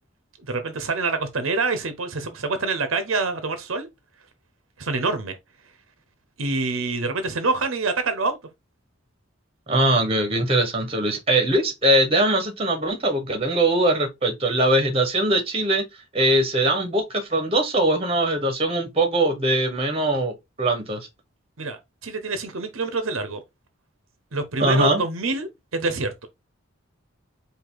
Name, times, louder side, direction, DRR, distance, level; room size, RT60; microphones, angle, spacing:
voice 1, 0.5-3.9 4.8-5.4 6.4-8.4 21.6-23.4 24.3-26.3, right 3 dB, 80° right, 0.9 m, -26 dB
voice 2, 9.7-15.8 16.1-21.1 24.6-25.0, right 1 dB, 30° right, 1.3 m, -21 dB
4.9 x 2.7 x 3.9 m
head